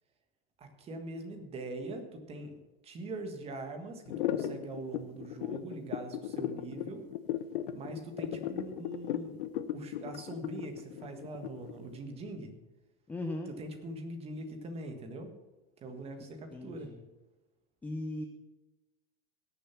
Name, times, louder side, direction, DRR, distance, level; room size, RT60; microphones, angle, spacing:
voice 1, 0.6-2.6 2.8-7.0 7.7-12.5 13.6-15.3 15.8-16.9, right 2 dB, 20° right, 6 dB, 1.6 m, -42 dB
sound 1, 4.1-11.9, left 12 dB, 60° left, 1.0 m, -36 dB
voice 2, 13.1-13.5 16.5-17.0 17.8-18.2, left 1 dB, 5° left, 4 dB, 0.6 m, -38 dB
18.0 x 7.0 x 5.9 m, 1.1 s
supercardioid pair, 160°, 31 cm